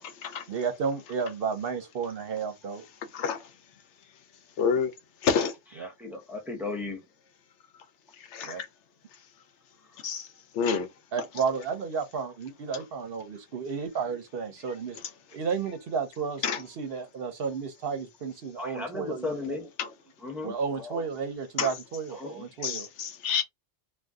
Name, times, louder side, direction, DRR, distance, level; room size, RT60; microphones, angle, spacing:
voice 1, 0.5-2.8 5.8-5.9 8.4-8.6 11.1-15.0 15.3-19.6 20.4-22.9, right 5 dB, 60° right, 0.7 m, -32 dB
voice 2, 4.6-4.9 5.2-5.5 8.3-8.7 10.0-10.3 10.5-10.9 12.7-12.8 16.4-16.6 19.8-19.9 21.6-21.7 22.6-23.4, left 6 dB, 75° left, 0.9 m, -28 dB
voice 3, 5.8-7.0 18.6-19.7 20.2-21.0 22.2-22.5, left 3 dB, ahead, 0.5 m, -36 dB
2.6 x 2.2 x 3.3 m
omnidirectional pair, 1.2 m